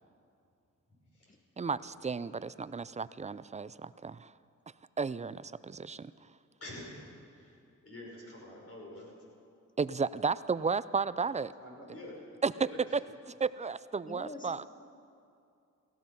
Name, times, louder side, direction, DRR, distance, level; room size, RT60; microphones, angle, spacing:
voice 1, 1.6-4.3 5.0-6.1 9.8-11.5 12.4-12.5 13.4-14.6, right 5 dB, 20° right, 17 dB, 0.4 m, -33 dB
voice 2, 6.6-7.1 7.3-9.1 11.6-12.3 12.6-13.0, left 1 dB, 45° left, -3 dB, 5.4 m, -47 dB
voice 3, 14.1-14.7, left 1 dB, 25° left, 6 dB, 1.3 m, -45 dB
17.0 x 15.5 x 5.5 m, 2.5 s
cardioid pair, 70°, 32 cm